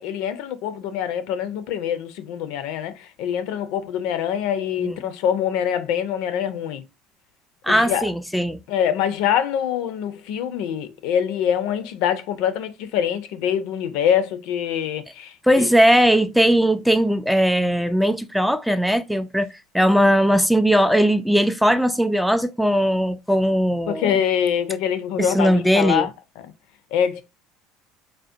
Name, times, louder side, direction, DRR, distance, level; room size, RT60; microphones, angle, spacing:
voice 1, 0.0-6.8 7.7-8.1 8.7-15.7 20.0-20.2 23.9-26.1 26.4-26.5 26.9-27.2, left 9 dB, 75° left, 0.5 m, -24 dB
voice 2, 7.6-8.6 15.4-19.5 19.7-24.2 25.2-26.1, equal, ahead, 0.3 m, -19 dB
3.6 x 2.1 x 2.5 m
supercardioid pair, 90°, 0 cm